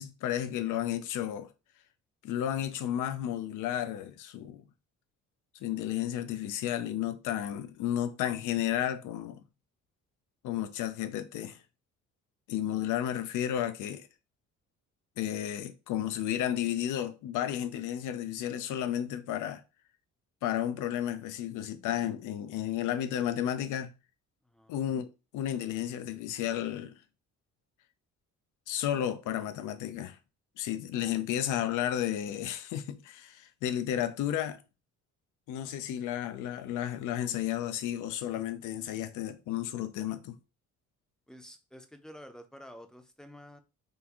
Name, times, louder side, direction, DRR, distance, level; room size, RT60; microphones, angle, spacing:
voice 1, 0.0-1.5 2.2-4.6 5.6-9.4 10.4-11.6 12.5-14.1 15.2-19.6 20.4-23.9 24.7-25.1 25.3-26.9 28.7-30.2 30.6-34.6 35.5-40.3, left 11 dB, 85° left, 0.5 m, -32 dB
voice 2, 41.3-43.6, equal, ahead, 0.5 m, -50 dB
3.6 x 2.4 x 2.9 m
cardioid pair, 90°, 30 cm